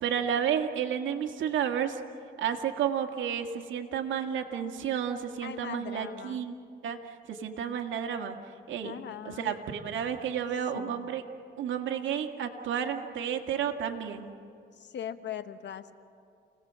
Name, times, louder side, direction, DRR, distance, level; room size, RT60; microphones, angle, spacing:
voice 1, 0.0-2.0 2.4-6.5 6.8-8.4 8.7-9.0 9.2-11.2 11.6-14.3, right 8 dB, 75° right, 4 dB, 1.9 m, -31 dB
voice 2, 5.4-6.5 8.8-9.6 10.7-11.1 14.8-15.9, left 9 dB, 60° left, 11 dB, 1.2 m, -40 dB
29.5 x 18.5 x 7.5 m, 2.5 s
cardioid pair, 90°, 20 cm